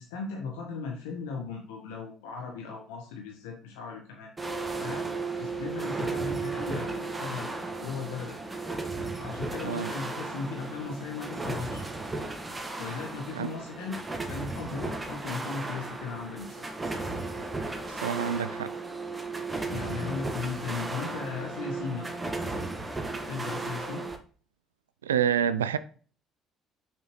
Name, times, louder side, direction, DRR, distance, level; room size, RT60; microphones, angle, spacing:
voice 1, 0.0-4.3 4.8-7.5 7.8-8.4 9.2-11.9 12.8-14.0 14.3-16.7 19.7-22.1 22.6-22.8 23.2-24.1, left 5 dB, 75° left, 1.3 m, -37 dB
sound 1, 4.4-24.2, right 3 dB, 20° right, 1.6 m, -35 dB
voice 2, 17.9-18.7 25.0-25.8, right 8 dB, 85° right, 0.3 m, -27 dB
7.1 x 5.7 x 3.2 m
hypercardioid pair, 50°, 0 cm